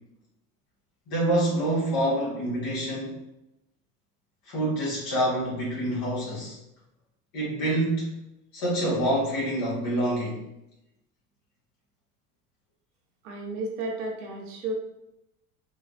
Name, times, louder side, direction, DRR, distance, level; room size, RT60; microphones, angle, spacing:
voice 1, 1.1-3.2 4.4-6.6 7.3-8.2 8.5-10.4, right 1 dB, 50° left, -5 dB, 1.5 m, -26 dB
voice 2, 13.2-14.7, right 2 dB, 70° right, 0 dB, 1.1 m, -33 dB
3.9 x 2.3 x 2.5 m, 0.87 s
hypercardioid pair, 90°, 45 cm